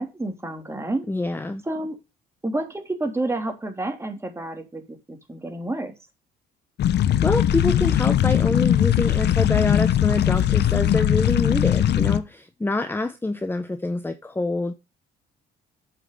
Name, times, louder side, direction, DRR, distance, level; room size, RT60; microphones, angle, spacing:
voice 1, 0.0-1.1 1.6-2.0 2.4-5.9, right 2 dB, 15° right, 3.1 m, -29 dB
voice 2, 1.1-1.6 6.9-14.7, left 2 dB, 10° left, 1.0 m, -26 dB
sound 1, 6.8-12.2, left 11 dB, 60° left, 0.9 m, -20 dB
8.3 x 5.9 x 6.7 m
supercardioid pair, 85°, 20 cm